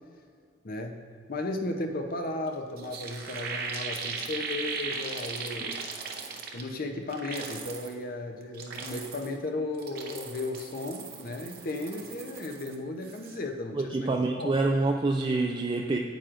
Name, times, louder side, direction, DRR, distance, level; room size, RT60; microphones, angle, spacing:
voice 1, 0.6-1.0 1.3-5.8 6.5-14.5, left 2 dB, 50° left, 4 dB, 0.7 m, -35 dB
sound 1, 2.5-2.6 2.8-6.8 7.1-7.9 8.4-9.4 9.7-12.7 13.0-13.4, right 5 dB, 50° right, 0.7 m, -38 dB
voice 2, 13.7-16.0, right 3 dB, 25° right, 2 dB, 0.3 m, -27 dB
9.1 x 8.7 x 2.5 m, 2.2 s
head